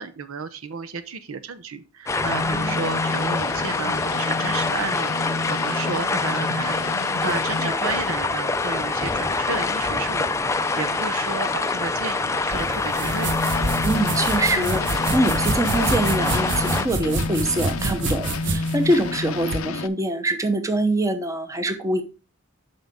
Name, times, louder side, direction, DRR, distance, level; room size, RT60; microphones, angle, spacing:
voice 1, 0.0-13.4, right 5 dB, 80° right, 12 dB, 0.8 m, -32 dB
sound 1, 2.1-16.9, left 3 dB, 15° left, 0.4 m, -25 dB
sound 2, 2.2-11.6 12.0-19.9, left 3 dB, 80° left, 0.6 m, -31 dB
voice 2, 2.4-2.8 7.2-7.8 13.8-22.0, right 1 dB, 15° right, 9 dB, 0.8 m, -24 dB
sound 3, 12.5-19.7, right 3 dB, 60° right, 1.0 m, -28 dB
7.7 x 5.7 x 3.6 m, 0.33 s
head